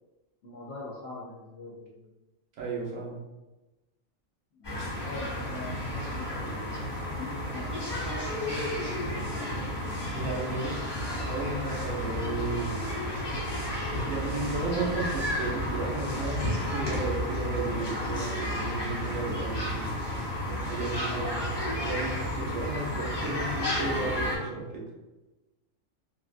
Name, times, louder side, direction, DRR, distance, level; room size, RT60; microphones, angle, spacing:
voice 1, 0.4-2.1 4.5-9.7 10.5-10.7 21.0-21.4, left 2 dB, 65° left, -5 dB, 0.8 m, -43 dB
voice 2, 2.6-3.2 10.1-10.9 11.2-12.7 14.0-20.2 20.5-21.3 21.8-24.8, right 3 dB, 80° right, -3 dB, 1.2 m, -34 dB
sound 1, 4.6-24.4, left 1 dB, 30° left, 0.5 m, -32 dB
3.2 x 2.4 x 2.4 m, 1.1 s
omnidirectional pair, 1.4 m